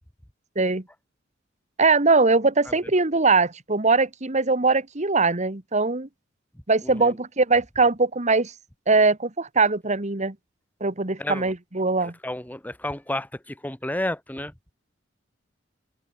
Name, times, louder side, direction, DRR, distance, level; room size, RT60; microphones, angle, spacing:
voice 1, 1.8-6.1 6.7-8.5 8.9-10.4 10.8-12.1, right 3 dB, 40° right, 1.8 m, -21 dB
voice 2, 11.2-11.5 12.0-14.5, left 1 dB, 10° left, 1.3 m, -31 dB
head